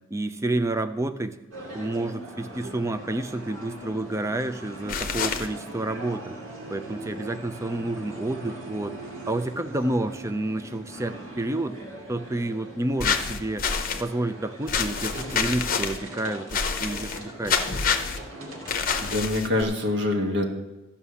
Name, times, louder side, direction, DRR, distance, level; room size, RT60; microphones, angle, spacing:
voice 1, 0.1-1.4 1.7-6.4 6.7-9.0 9.3-11.8 12.1-13.7 13.9-17.6, right 2 dB, 15° right, 9 dB, 0.4 m, -29 dB
sound 1, 1.5-19.2, right 1 dB, 70° right, 2.5 m, -41 dB
sound 2, 4.9-5.5 13.0-14.0 14.7-16.0 16.5-17.2 17.5-18.2 18.7-19.6, left 6 dB, 40° left, 0.8 m, -27 dB
voice 2, 19.0-20.5, left 2 dB, 55° right, 2 dB, 1.7 m, -25 dB
13.0 x 5.8 x 7.0 m, 1.1 s
head